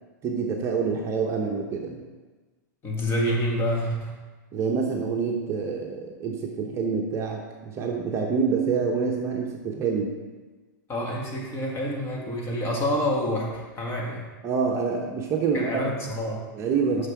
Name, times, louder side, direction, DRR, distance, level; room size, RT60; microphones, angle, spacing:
voice 1, 0.2-2.0 4.5-10.1 14.4-15.9 16.5-17.1, right 5 dB, 25° right, 0 dB, 0.9 m, -27 dB
voice 2, 2.8-4.2 10.9-14.3 15.5-16.4 17.0-17.1, equal, 25° left, -1 dB, 1.6 m, -28 dB
6.6 x 5.9 x 4.7 m, 1.3 s
hypercardioid pair, 130°, 10 cm